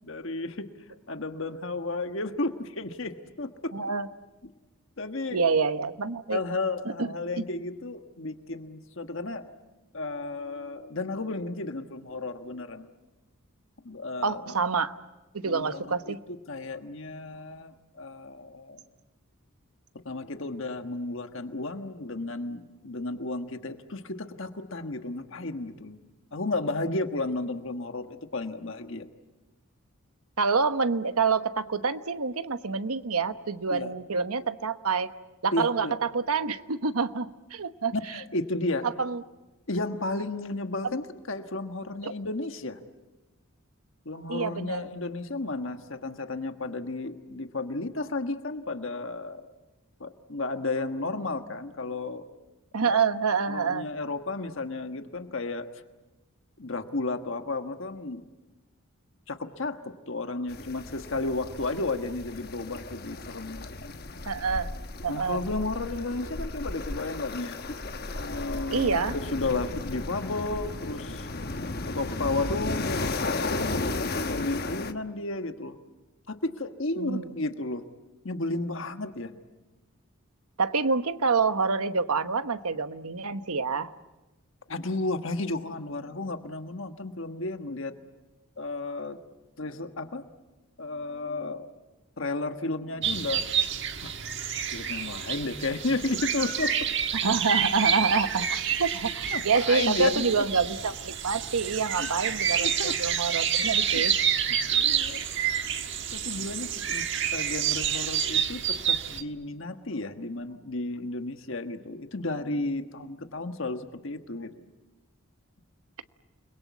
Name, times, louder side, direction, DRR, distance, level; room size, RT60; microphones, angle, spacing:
voice 1, 0.0-0.7 1.1-3.7 5.0-5.4 6.3-9.4 9.9-12.9 13.8-14.4 15.4-18.8 20.0-26.0 26.3-29.1 33.7-33.9 35.5-36.0 37.9-38.9 39.7-42.8 44.0-49.5 50.0-52.2 52.9-53.0 53.5-55.7 56.6-58.3 59.3-59.8 60.1-64.0 65.1-67.6 68.2-69.0 69.3-71.3 71.9-75.8 76.3-77.8 78.2-79.3 84.7-87.9 88.6-89.2 89.6-90.2 90.8-91.7 92.2-93.4 94.0-94.1 94.7-96.9 99.3-100.4 102.0-102.1 102.6-102.9 103.9-104.0 104.5-105.2 106.1-107.0 107.3-114.7, left 2 dB, 60° left, 7 dB, 1.4 m, -33 dB
voice 2, 3.7-4.1 5.3-6.4 6.8-7.1 14.2-14.9 15.3-16.2 30.4-35.1 35.4-37.9 38.8-39.2 42.0-42.1 44.3-44.9 52.7-53.9 64.3-64.7 65.0-65.4 68.7-69.1 77.0-77.3 80.6-83.9 97.2-104.1, right 5 dB, 90° right, 11 dB, 1.1 m, -27 dB
sound 1, 60.5-74.9, left 2 dB, 45° left, 1.2 m, -34 dB
sound 2, 93.0-109.2, right 8 dB, 55° right, 1.5 m, -28 dB
29.5 x 22.0 x 8.3 m, 1.1 s
head